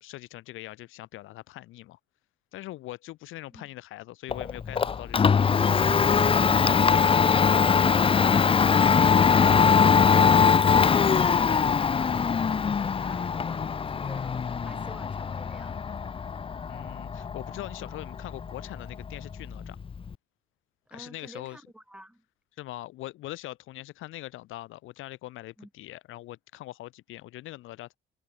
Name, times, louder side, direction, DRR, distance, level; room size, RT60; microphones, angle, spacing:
voice 1, 0.0-2.0 2.5-5.5 16.7-19.8 20.9-21.6 22.6-28.0, left 16 dB, 90° left, 1.4 m, -42 dB
Domestic sounds home sounds, 4.3-20.1, left 6 dB, 25° left, 0.5 m, -22 dB
voice 2, 10.0-16.0 20.9-22.2 25.6-25.7, right 1 dB, 5° right, 3.8 m, -49 dB
cardioid pair, 90°, 20 cm